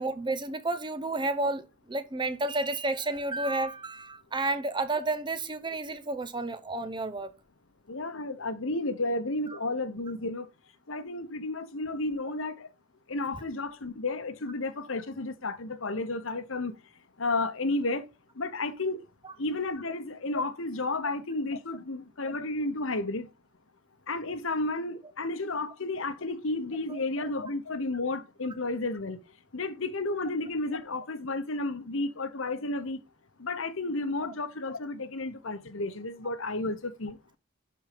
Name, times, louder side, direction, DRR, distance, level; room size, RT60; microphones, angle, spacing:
voice 1, 0.0-7.3 26.9-27.3, right 2 dB, 20° right, 0.9 m, -31 dB
voice 2, 7.9-10.5 10.9-12.7 13.1-16.7 17.2-18.1 18.4-19.0 19.4-23.3 24.1-29.2 29.5-33.0 33.4-37.2, left 2 dB, 70° left, 1.1 m, -32 dB
11.5 x 4.5 x 5.2 m
head